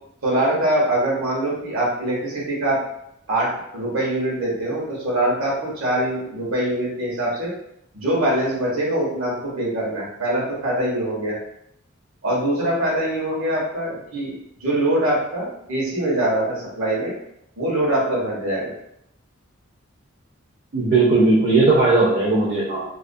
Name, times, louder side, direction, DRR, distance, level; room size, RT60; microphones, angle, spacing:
voice 1, 0.2-2.8 3.3-7.5 7.9-11.4 12.2-14.3 14.6-17.1 17.6-18.7, right 1 dB, 80° right, -5 dB, 0.8 m, -23 dB
voice 2, 20.7-22.8, right 3 dB, 40° right, -4 dB, 0.4 m, -17 dB
2.4 x 2.2 x 2.5 m, 0.78 s
head